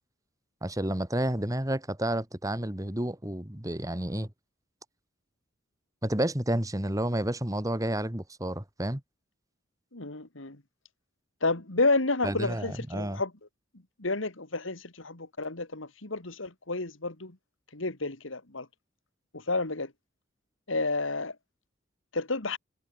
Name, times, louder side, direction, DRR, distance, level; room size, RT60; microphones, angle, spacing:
voice 1, 0.6-4.3 6.0-9.0 12.2-13.2, right 1 dB, 15° right, 2.0 m, -30 dB
voice 2, 9.9-10.6 11.4-13.3 14.0-17.4 17.7-18.7 19.3-19.9 20.7-21.3 22.1-22.6, left 3 dB, 75° left, 2.6 m, -30 dB
head